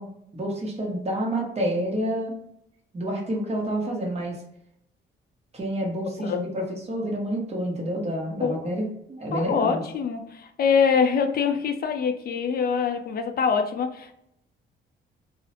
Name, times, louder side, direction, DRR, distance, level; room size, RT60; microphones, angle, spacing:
voice 1, 0.0-2.3 2.9-4.4 5.5-9.8, right 1 dB, 35° right, -1 dB, 0.9 m, -29 dB
voice 2, 6.2-6.5 8.4-8.7 9.3-14.2, left 6 dB, 50° left, 6 dB, 0.4 m, -24 dB
2.4 x 2.0 x 2.7 m, 0.78 s
cardioid pair, 90°, 20 cm